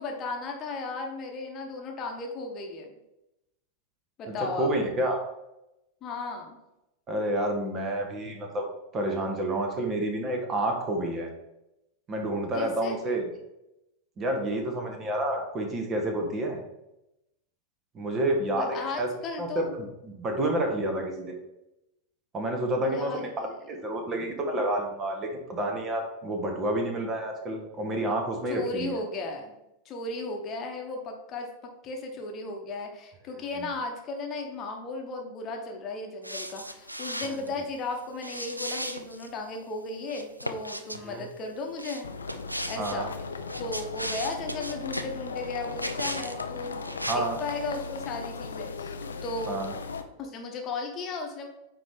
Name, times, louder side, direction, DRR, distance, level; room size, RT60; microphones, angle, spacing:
voice 1, 0.0-2.9 4.2-4.7 6.0-6.6 12.5-13.0 18.5-19.7 22.8-23.5 28.5-29.6 29.8-31.5 31.8-42.1 42.7-43.1 43.6-46.8 47.1-49.0 49.2-49.6 50.2-51.5, left 3 dB, 30° left, 2 dB, 1.1 m, -35 dB
voice 2, 4.3-5.3 7.1-8.7 8.9-11.3 12.1-13.3 14.2-16.6 17.9-19.1 19.4-21.4 22.3-23.3 23.7-28.9 33.6-33.7 37.2-37.4 41.0-41.2 42.8-43.1 47.1-47.4 49.5-49.7, right 1 dB, 25° right, 3 dB, 1.2 m, -29 dB
sound 1, 36.2-37.5 38.2-39.3 40.1-41.0 41.8-43.0 43.4-45.1 45.8-46.4 46.7-47.1, equal, 90° right, 0.4 m, -36 dB
sound 2, 42.0-50.0, left 4 dB, 70° left, 0.5 m, -37 dB
9.1 x 3.2 x 3.5 m, 0.89 s
figure-of-eight pair, 90°, 0 cm